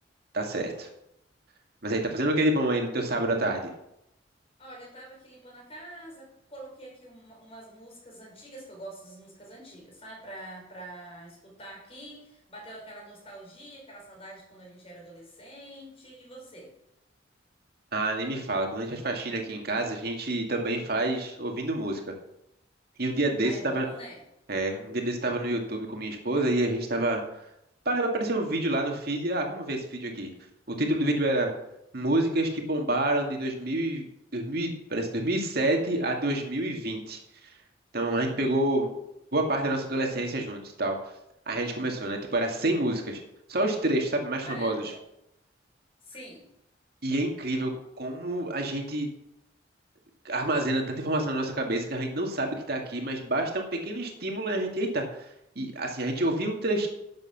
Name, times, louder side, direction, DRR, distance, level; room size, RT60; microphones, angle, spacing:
voice 1, 0.3-0.9 1.8-3.7 17.9-22.1 23.0-23.9 24.5-27.2 27.9-30.3 30.8-31.5 31.9-34.1 34.3-37.2 37.9-38.9 39.3-41.0 41.5-43.2 43.5-44.8 47.0-47.7 48.0-49.1 50.2-55.0 55.6-56.9, right 1 dB, 60° right, 2 dB, 2.2 m, -28 dB
voice 2, 4.6-16.7 23.4-24.2 44.4-45.0 46.0-46.5, right 1 dB, 35° left, -1 dB, 5.0 m, -45 dB
11.5 x 7.8 x 6.0 m, 0.83 s
head